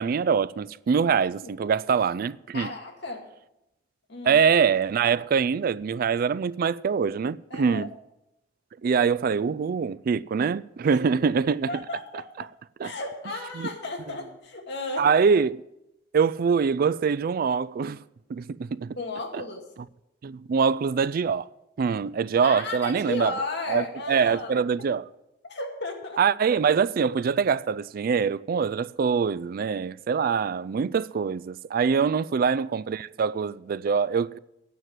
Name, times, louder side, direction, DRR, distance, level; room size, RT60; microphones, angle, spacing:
voice 1, 0.0-2.7 4.2-7.9 8.8-11.8 12.4-12.5 12.8-12.9 13.5-13.7 15.0-15.6 16.1-18.0 18.3-19.0 19.3-19.4 20.2-21.5 21.8-23.3 23.7-25.0 26.2-34.4, right 6 dB, 50° right, 0.3 m, -24 dB
voice 2, 2.5-3.3 4.1-4.4 7.5-7.9 10.9-11.1 11.7-12.5 12.8-15.1 19.0-19.6 22.4-24.9 25.4-26.2 31.9-32.0, left 2 dB, 65° left, 2.2 m, -34 dB
9.3 x 7.6 x 9.2 m
head